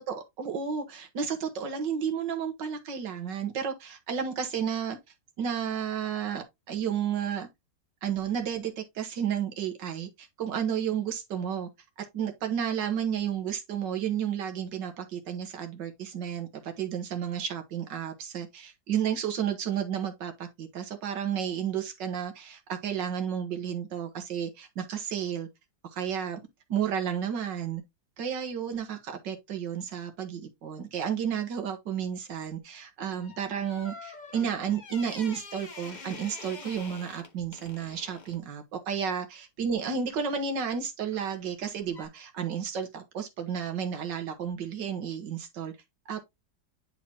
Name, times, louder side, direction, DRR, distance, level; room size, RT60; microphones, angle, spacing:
voice 1, 0.0-5.0 5.4-7.5 8.0-11.7 12.1-25.5 25.9-26.4 26.7-27.8 28.2-45.7 46.1-46.2, right 8 dB, 70° right, 2.1 m, -32 dB
sound 1, 33.2-38.4 41.1-41.4 41.9-42.1, left 4 dB, 35° left, 0.8 m, -46 dB
10.0 x 3.9 x 2.9 m
omnidirectional pair, 2.0 m